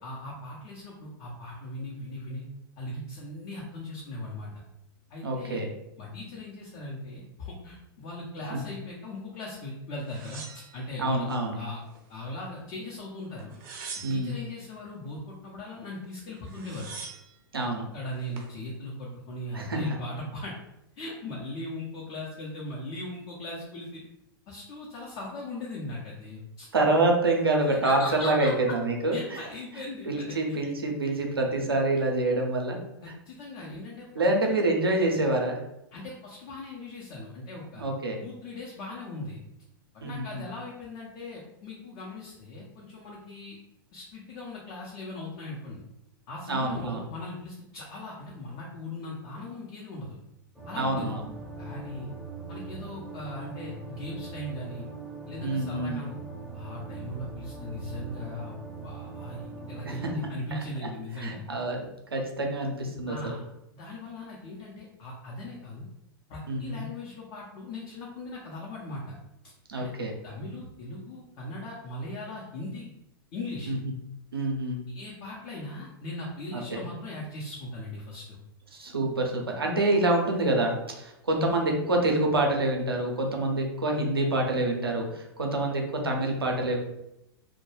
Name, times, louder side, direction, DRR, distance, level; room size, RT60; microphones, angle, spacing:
voice 1, 0.0-2.4 2.8-4.6 5.1-5.6 6.0-10.4 10.7-11.3 11.6-11.8 12.1-13.6 13.9-16.9 17.5-20.6 21.0-24.0 24.5-26.7 27.8-28.8 29.1-30.6 33.0-34.6 35.9-37.8 38.2-39.4 39.9-43.6 43.9-45.8 46.3-50.2 50.7-51.1 51.6-52.1 52.5-54.9 55.3-56.1 56.5-58.6 58.8-61.4 63.1-63.4 63.7-65.9 66.3-69.2 69.4-69.9 70.2-72.9 73.3-73.7 74.9-78.4, left 2 dB, 45° left, -3 dB, 0.6 m, -39 dB
voice 2, 5.2-5.7 8.5-8.6 11.0-11.6 14.0-14.3 17.5-17.8 19.5-19.8 26.7-29.2 30.1-32.8 34.1-35.6 37.8-38.2 40.0-40.4 46.5-47.0 50.8-51.2 55.4-56.0 59.8-60.1 60.5-60.6 61.2-63.3 66.5-66.8 69.7-70.1 73.7-73.9 74.3-74.8 76.5-76.9 78.7-86.8, right 2 dB, 90° right, 1 dB, 0.6 m, -27 dB
sound 1, 10.1-11.4 11.9-12.7 13.4-14.5 16.0-16.1 16.4-17.3 18.0-18.5, right 5 dB, 45° right, 0.6 m, -43 dB
sound 2, 50.5-60.2, right 4 dB, 5° left, 0.7 m, -41 dB
2.2 x 2.2 x 3.1 m, 0.85 s
hypercardioid pair, 105°, 12 cm